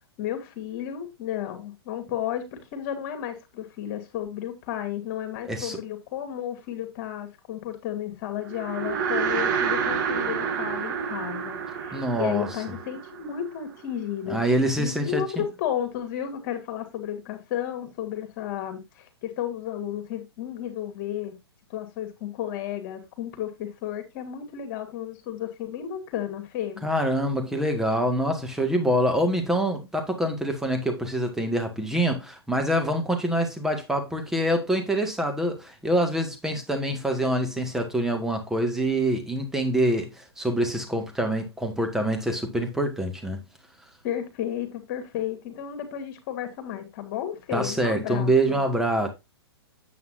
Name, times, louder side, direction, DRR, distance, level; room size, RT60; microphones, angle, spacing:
voice 1, 0.2-14.4 14.8-21.3 21.7-26.8 44.0-48.6, left 10 dB, 40° left, 2.5 m, -33 dB
voice 2, 5.5-5.8 11.9-12.5 14.3-15.2 26.8-43.4 47.5-49.1, right 1 dB, 5° right, 1.9 m, -25 dB
sound 1, 8.5-13.9, right 6 dB, 50° right, 1.8 m, -29 dB
9.3 x 8.4 x 2.7 m
figure-of-eight pair, 115°, 14 cm